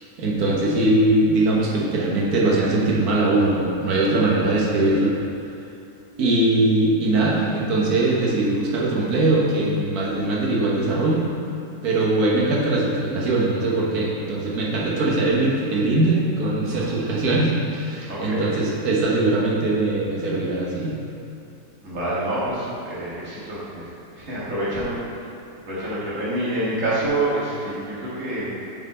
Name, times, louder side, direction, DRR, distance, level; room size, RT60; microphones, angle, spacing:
voice 1, 0.2-5.1 6.2-11.3 11.8-21.0, right 2 dB, 75° right, -4 dB, 1.7 m, -21 dB
voice 2, 16.6-17.0 18.1-18.4 21.8-23.8 24.1-25.0 25.7-28.5, right 1 dB, 55° right, -9 dB, 2.3 m, -27 dB
7.6 x 6.2 x 4.3 m, 2.7 s
omnidirectional pair, 1.6 m